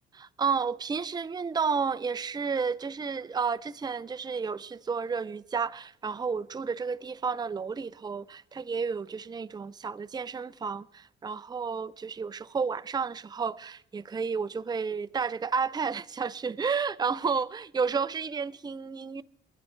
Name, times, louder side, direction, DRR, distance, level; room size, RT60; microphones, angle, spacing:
voice 1, 0.1-19.2, right 5 dB, 20° right, 0.5 m, -31 dB
28.0 x 11.0 x 4.5 m
cardioid pair, 90°, 20 cm